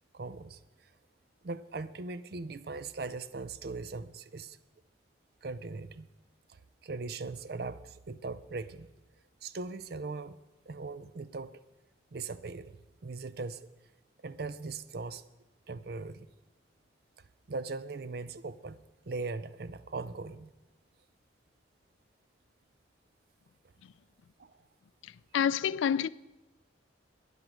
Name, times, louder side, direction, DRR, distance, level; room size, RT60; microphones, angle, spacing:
voice 1, 0.1-0.6 1.4-4.6 5.4-6.1 6.5-8.9 9.4-10.4 10.7-11.6 12.1-13.7 14.2-15.3 15.7-16.3 17.5-18.8 19.1-20.5 24.4-24.6, right 3 dB, 55° right, 0.5 m, -40 dB
voice 2, 25.0-26.1, left 8 dB, 85° left, 0.3 m, -29 dB
11.0 x 10.5 x 6.3 m
head